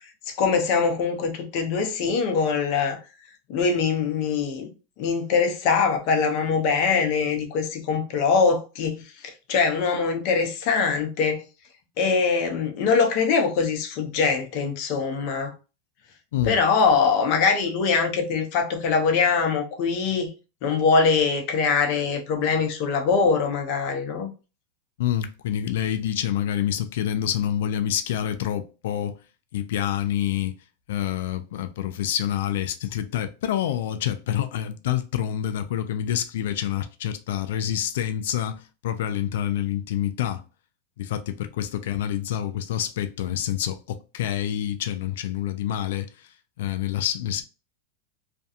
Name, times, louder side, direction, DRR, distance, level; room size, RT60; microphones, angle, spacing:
voice 1, 0.3-3.0 3.5-4.7 5.0-11.4 12.0-15.5 16.5-20.3 20.6-24.3, left 5 dB, 50° left, 0.7 m, -23 dB
voice 2, 25.0-29.2 29.5-30.6 30.9-40.4 41.0-47.4, left 10 dB, 75° left, 0.3 m, -27 dB
2.4 x 2.2 x 2.7 m
supercardioid pair, 135°, 0 cm